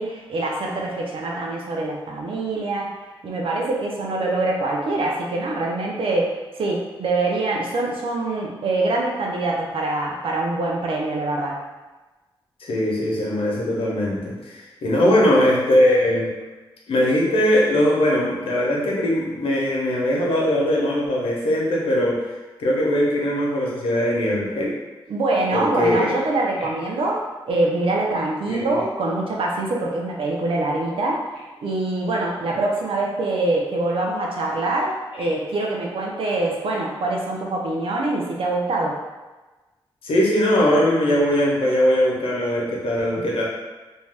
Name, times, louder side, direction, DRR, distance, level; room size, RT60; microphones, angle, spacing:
voice 1, 0.0-2.9 3.2-11.6 15.0-15.2 25.1-27.2 27.5-31.2 31.6-39.0, right 2 dB, 75° right, -2 dB, 0.5 m, -24 dB
voice 2, 12.6-16.3 16.9-22.1 22.6-24.7 25.5-26.1 28.5-28.8 40.0-43.4, left 1 dB, 85° left, -4 dB, 0.7 m, -20 dB
2.6 x 2.2 x 3.3 m, 1.2 s
cardioid pair, 75°, 9 cm